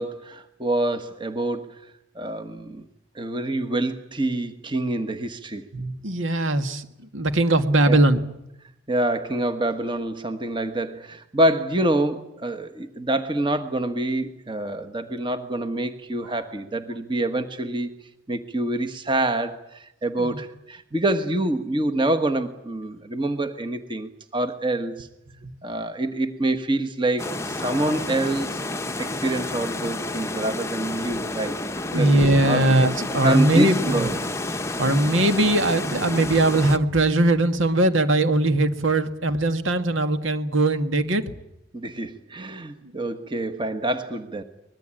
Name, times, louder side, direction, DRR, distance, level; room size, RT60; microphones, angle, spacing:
voice 1, 0.0-2.9 3.1-5.6 7.9-8.0 8.9-17.9 18.3-25.1 25.6-28.6 29.0-31.6 31.9-32.6 33.2-34.2 41.7-44.4, right 1 dB, 25° right, 8 dB, 1.4 m, -26 dB
voice 2, 5.7-6.9 7.1-8.3 20.2-20.4 25.4-25.5 31.9-34.1 34.8-41.2, right 2 dB, 80° right, 8 dB, 2.0 m, -20 dB
sound 1, 27.2-36.8, left 2 dB, 15° left, 0.8 m, -30 dB
24.0 x 21.0 x 9.0 m, 0.84 s
head